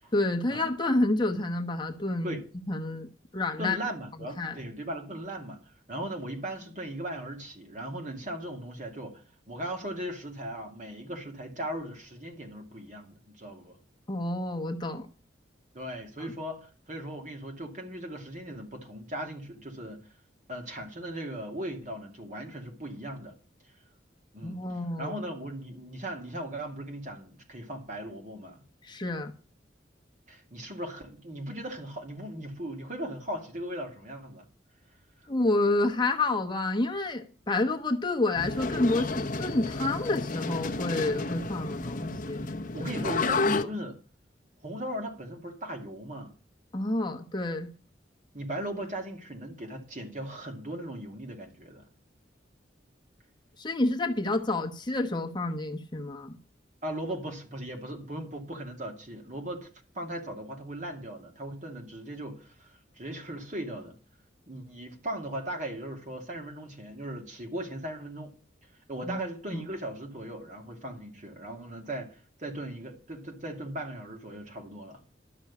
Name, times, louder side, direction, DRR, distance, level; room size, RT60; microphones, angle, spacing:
voice 1, 0.1-2.4 2.7-3.1 3.3-3.8 4.4-4.6 14.1-15.1 24.4-25.1 28.8-29.3 35.3-42.5 42.8-42.9 43.3-43.4 46.7-47.7 53.6-56.4 69.1-69.2 69.5-69.6, left 2 dB, 25° left, 1.1 m, -29 dB
voice 2, 3.6-5.6 5.9-13.8 15.7-20.1 20.5-23.3 24.3-24.6 25.0-28.6 30.3-34.5 35.2-35.3 42.7-44.0 44.6-46.3 48.3-51.9 56.8-59.7 59.9-64.0 64.5-68.3 68.9-75.0, right 1 dB, 40° right, 2.4 m, -38 dB
sound 1, 38.4-43.6, left 3 dB, 45° left, 0.8 m, -31 dB
12.0 x 6.3 x 8.3 m
head